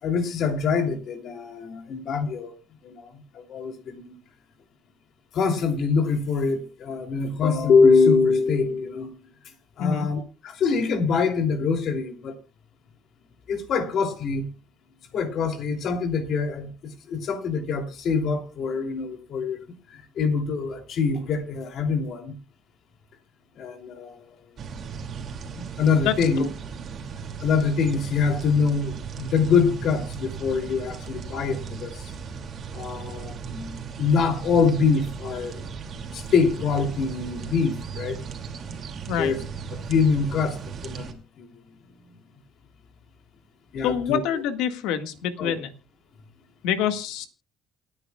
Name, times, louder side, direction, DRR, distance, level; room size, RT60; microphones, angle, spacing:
voice 1, 0.0-2.5 2.8-4.2 5.3-9.1 9.8-12.3 13.5-14.5 15.1-19.6 19.9-22.4 23.6-24.2 25.5-26.5 27.4-32.1 32.7-35.6 36.1-38.2 39.2-39.4 39.7-41.6 43.7-44.4 45.4-45.6, left 5 dB, 55° left, 2.9 m, -24 dB
sound 1, 24.6-41.1, right 6 dB, 40° right, 2.5 m, -36 dB
voice 2, 26.0-26.5 39.1-39.3 43.8-45.7 46.6-47.3, left 8 dB, 85° left, 1.8 m, -26 dB
28.5 x 9.9 x 2.4 m
cardioid pair, 130°, 0 cm